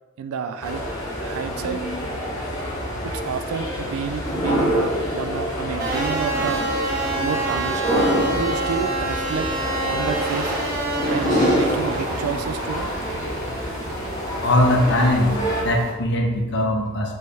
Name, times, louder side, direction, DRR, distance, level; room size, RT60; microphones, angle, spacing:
voice 1, 0.2-0.8 1.2-1.8 3.0-6.6 7.2-9.5 9.8-10.6 11.1-12.9, right 6 dB, 80° right, 9 dB, 0.3 m, -30 dB
sound 1, 0.6-15.6, equal, 15° left, 0.9 m, -26 dB
sound 2, 5.8-15.9, right 2 dB, 45° right, 1.1 m, -28 dB
voice 2, 14.4-17.1, left 1 dB, 55° left, 2 dB, 0.6 m, -20 dB
4.2 x 3.2 x 3.4 m, 1.3 s
head